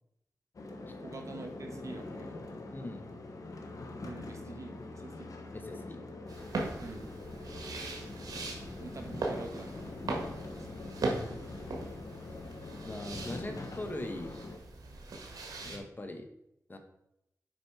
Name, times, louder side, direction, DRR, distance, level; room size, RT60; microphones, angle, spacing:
sound 1, 0.5-14.6, left 2 dB, 65° left, 1.2 m, -44 dB
voice 1, 1.0-2.4 4.0-5.3 6.8-7.1 8.8-10.2, right 2 dB, 55° right, 4 dB, 1.3 m, -45 dB
voice 2, 2.7-3.0 5.5-6.0 10.7-11.1 12.8-14.3 15.6-16.3 16.7-16.8, left 1 dB, 30° left, 5 dB, 1.2 m, -41 dB
sound 2, 6.3-15.8, right 2 dB, 90° right, 1.6 m, -40 dB
7.6 x 5.2 x 4.7 m, 0.80 s
wide cardioid pair, 80°, 6 cm